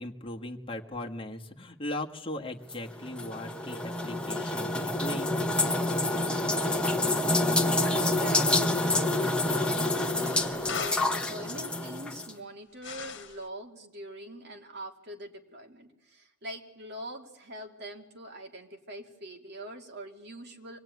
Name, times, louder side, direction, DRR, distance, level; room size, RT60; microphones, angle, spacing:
voice 1, 0.0-5.4, left 1 dB, 25° left, 0 dB, 1.6 m, -38 dB
sound 1, 2.7-12.3, left 2 dB, 5° left, 1.2 m, -27 dB
sound 2, 5.7-7.2 9.4-11.2 12.8-13.5, left 6 dB, 60° left, 1.5 m, -42 dB
voice 2, 7.9-20.8, right 1 dB, 55° right, 2 dB, 2.7 m, -43 dB
24.5 x 19.5 x 9.4 m, 0.98 s
head